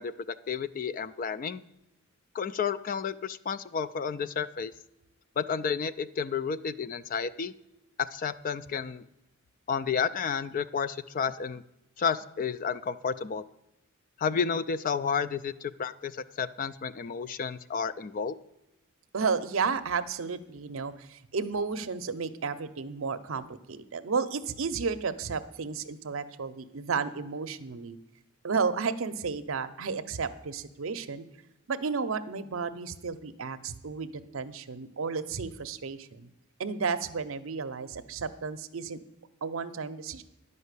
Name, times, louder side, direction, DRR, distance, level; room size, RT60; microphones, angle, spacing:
voice 1, 0.0-1.6 2.3-4.7 5.4-7.5 8.0-9.0 9.7-11.6 12.0-13.4 14.2-18.4, left 6 dB, 40° left, 14 dB, 0.3 m, -31 dB
voice 2, 19.1-28.0 28.4-31.2 31.7-36.3 36.6-39.0 39.4-40.2, right 5 dB, 65° right, 11 dB, 0.6 m, -32 dB
10.5 x 5.4 x 8.1 m, 0.89 s
head